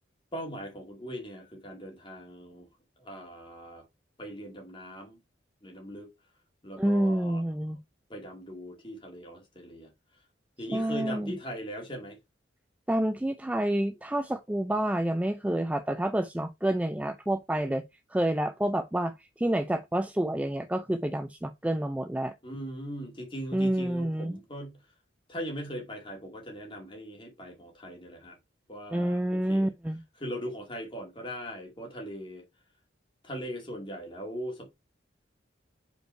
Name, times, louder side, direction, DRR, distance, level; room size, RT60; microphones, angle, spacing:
voice 1, 0.3-2.7 3.0-3.8 4.2-5.2 5.6-6.1 6.6-7.4 8.1-9.9 10.6-12.2 22.4-24.8 25.3-28.4 28.7-29.2 29.5-29.7 30.2-32.4 33.2-34.7, equal, 25° left, 2.2 m, -40 dB
voice 2, 6.8-7.8 10.7-11.4 12.9-17.8 18.1-22.3 23.5-24.4 28.9-30.0, right 1 dB, 10° right, 0.4 m, -28 dB
5.4 x 4.5 x 4.4 m
head